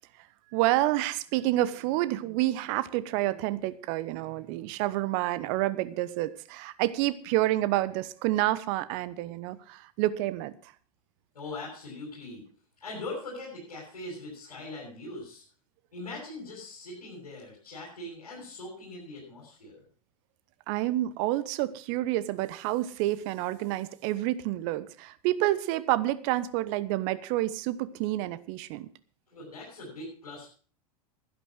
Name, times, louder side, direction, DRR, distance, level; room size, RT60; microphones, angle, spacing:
voice 1, 0.5-10.5 20.7-28.9, right 16 dB, 50° right, 16 dB, 1.0 m, -28 dB
voice 2, 11.3-12.5 12.8-15.4 15.9-19.8 29.3-30.5, left 2 dB, 85° left, -7 dB, 7.8 m, -41 dB
12.0 x 11.0 x 6.2 m, 0.42 s
hypercardioid pair, 90°, 19 cm